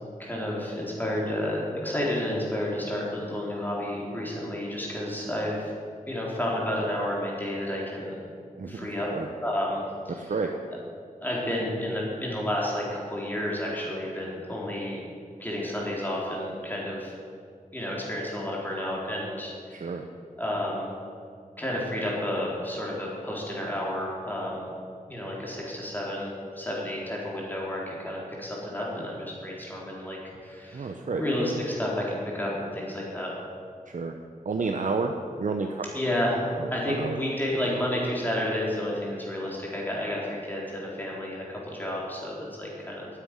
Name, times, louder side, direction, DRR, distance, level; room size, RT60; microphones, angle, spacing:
voice 1, 0.2-5.7 6.1-8.1 8.6-9.1 9.4-10.3 11.2-15.0 15.4-17.1 17.7-20.0 20.4-20.9 21.6-24.7 25.1-33.3 35.9-43.1, left 1 dB, 15° left, -4 dB, 4.1 m, -31 dB
voice 2, 8.6-9.3 10.3-10.5 19.7-20.0 30.7-31.2 33.9-34.1 34.4-35.1 35.4-35.8 36.6-37.2, right 4 dB, 65° right, 3 dB, 0.9 m, -30 dB
9.6 x 9.4 x 9.6 m, 2.2 s
wide cardioid pair, 85°, 14 cm